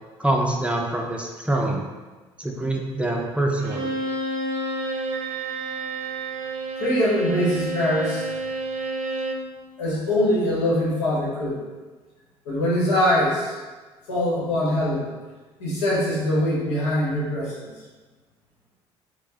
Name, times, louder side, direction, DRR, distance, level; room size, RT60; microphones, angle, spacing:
voice 1, 0.2-1.9 2.4-3.9, right 1 dB, 10° right, 0 dB, 0.5 m, -25 dB
Bowed string instrument, 3.6-9.5, right 2 dB, 55° right, 0.5 m, -29 dB
voice 2, 6.8-8.3 9.8-11.6 12.4-13.5 14.1-15.1 15.6-17.6, left 1 dB, 80° left, -6 dB, 1.0 m, -23 dB
4.4 x 2.1 x 2.8 m, 1.3 s
figure-of-eight pair, 50°, 14 cm